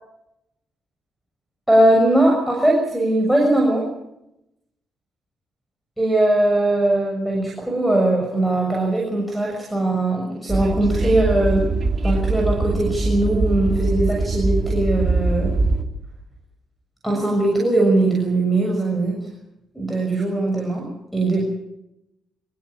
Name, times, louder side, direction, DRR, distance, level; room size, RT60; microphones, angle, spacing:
voice 1, 1.7-3.9 6.0-11.7 12.0-15.5 17.0-19.3 19.7-20.9 21.1-21.5, right 1 dB, ahead, -2 dB, 6.8 m, -20 dB
Train, 10.5-15.8, right 3 dB, 45° right, 3.2 m, -22 dB
25.0 x 15.5 x 8.7 m, 0.84 s
cardioid pair, 90°, 0 cm